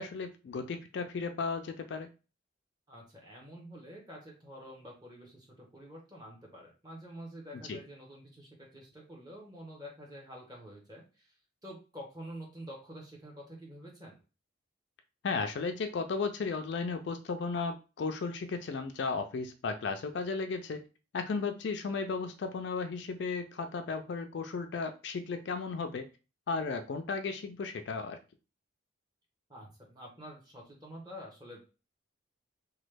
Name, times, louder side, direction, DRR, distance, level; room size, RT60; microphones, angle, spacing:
voice 1, 0.0-2.1 7.7-7.8 15.2-20.8 21.1-26.1 26.5-28.2, left 4 dB, 55° left, 7 dB, 0.3 m, -35 dB
voice 2, 2.9-11.3 11.6-14.2 29.5-31.6, equal, 20° right, -1 dB, 1.0 m, -48 dB
3.0 x 2.2 x 3.3 m, 0.32 s
head